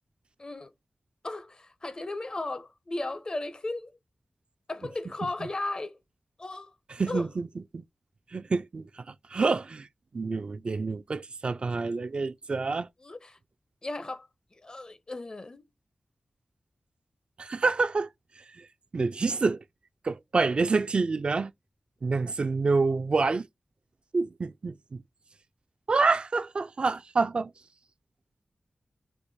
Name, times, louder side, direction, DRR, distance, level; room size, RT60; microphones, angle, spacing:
voice 1, 0.4-0.7 1.2-4.0 4.7-6.0 6.4-6.7 7.1-7.3 13.0-13.4 13.8-15.6, left 2 dB, 40° left, 0.6 m, -36 dB
voice 2, 7.0-7.5 7.7-7.8 8.3-9.9 10.1-12.9 17.4-18.1 18.4-18.7 18.9-19.6 20.0-21.5 22.0-23.5 24.1-25.0 25.9-27.5, right 4 dB, 55° right, 0.3 m, -27 dB
4.5 x 2.1 x 2.6 m
wide cardioid pair, 70°, 2 cm